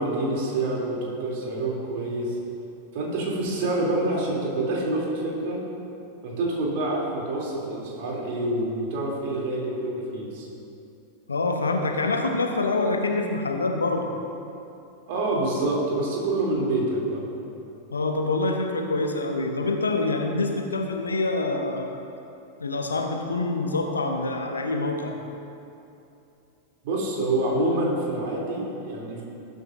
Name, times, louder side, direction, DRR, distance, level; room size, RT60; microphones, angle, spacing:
voice 1, 0.0-2.4 2.9-5.6 6.2-10.5 15.1-17.2 26.8-29.2, right 2 dB, 50° right, -3 dB, 2.9 m, -27 dB
voice 2, 11.3-14.1 17.9-22.0 22.6-25.1, left 3 dB, 75° left, 3 dB, 1.0 m, -26 dB
19.0 x 9.6 x 2.6 m, 2.8 s
figure-of-eight pair, 90°, 0 cm